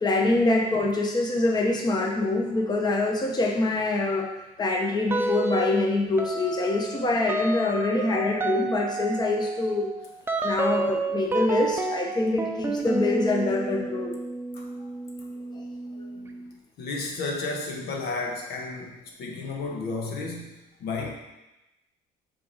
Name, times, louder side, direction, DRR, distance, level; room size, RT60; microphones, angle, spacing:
voice 1, 0.0-9.9 10.4-14.1, left 2 dB, 25° left, 0 dB, 0.9 m, -25 dB
sound 1, 5.1-5.8 6.2-16.5, right 2 dB, 15° right, 0.5 m, -30 dB
voice 2, 14.5-14.9 15.4-15.6 15.9-16.4 16.8-21.1, left 3 dB, 70° left, 0 dB, 1.2 m, -33 dB
6.5 x 3.8 x 4.0 m, 0.97 s
cardioid pair, 110°, 17 cm